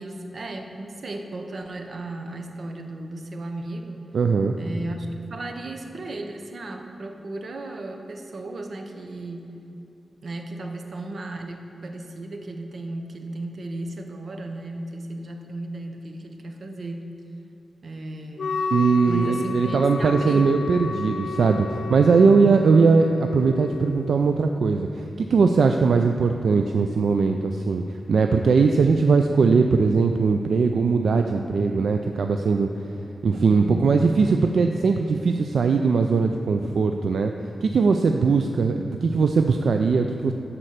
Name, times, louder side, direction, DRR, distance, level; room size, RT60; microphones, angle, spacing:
voice 1, 0.0-4.1 4.6-9.5 10.2-17.1 17.8-18.6 19.0-20.5 33.5-34.0 38.8-39.0, right 2 dB, 60° right, 4 dB, 0.9 m, -35 dB
voice 2, 4.1-4.6 18.7-27.8 28.1-32.7 33.2-37.3 37.6-40.3, right 4 dB, 80° right, 5 dB, 0.4 m, -20 dB
Wind instrument woodwind instrument, 18.4-24.2, left 4 dB, 75° left, 0.3 m, -32 dB
11.0 x 4.4 x 6.4 m, 2.9 s
wide cardioid pair, 90°, 0 cm